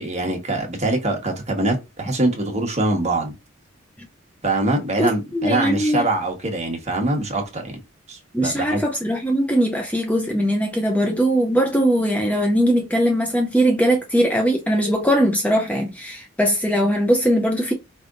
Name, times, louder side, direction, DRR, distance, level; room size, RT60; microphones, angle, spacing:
voice 1, 0.0-3.3 4.4-7.8 8.1-8.8, right 2 dB, 35° right, 1.2 m, -23 dB
voice 2, 5.0-6.1 8.3-17.7, equal, 5° left, 0.5 m, -20 dB
4.7 x 3.4 x 2.5 m
head